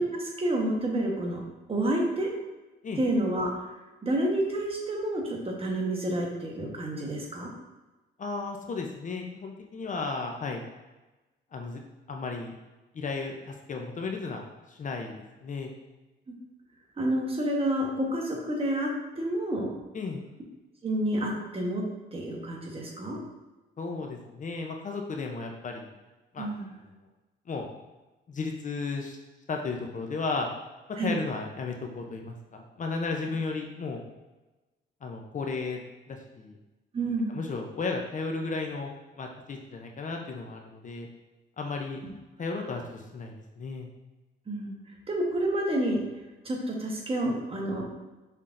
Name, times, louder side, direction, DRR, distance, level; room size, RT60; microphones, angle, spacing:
voice 1, 0.0-1.4 1.7-2.3 3.0-3.5 4.0-7.5 17.0-18.9 19.2-19.7 20.8-21.8 22.1-23.2 26.4-26.7 31.0-31.2 36.9-37.4 44.5-44.7 45.1-46.0 46.4-47.8, right 1 dB, 30° right, -1 dB, 1.1 m, -29 dB
voice 2, 8.2-10.6 11.5-11.8 12.1-12.5 12.9-15.1 15.4-15.7 19.9-20.2 23.8-25.9 26.3-26.7 27.5-27.7 28.3-29.2 29.5-30.5 31.0-34.0 35.0-35.8 36.1-36.6 37.3-38.9 39.2-41.1 41.6-42.0 42.4-43.9, left 4 dB, 40° left, 2 dB, 0.6 m, -34 dB
5.8 x 3.5 x 2.5 m, 1.1 s
cardioid pair, 90°, 20 cm